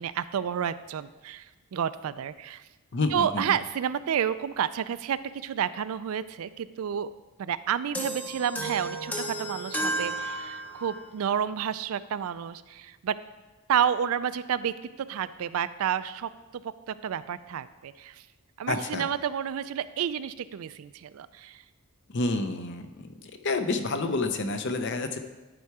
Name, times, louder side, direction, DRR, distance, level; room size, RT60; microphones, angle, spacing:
voice 1, 0.0-2.6 3.1-7.1 7.4-13.2 13.7-16.3 16.6-18.2 18.6-21.6, right 8 dB, 75° right, 15 dB, 0.3 m, -30 dB
voice 2, 2.9-3.4 18.7-19.0 22.1-23.1 23.4-25.2, left 3 dB, 50° left, 8 dB, 0.6 m, -28 dB
sound 1, 7.9-11.1, right 1 dB, 5° left, 0.6 m, -33 dB
11.0 x 4.6 x 4.8 m, 1.2 s
head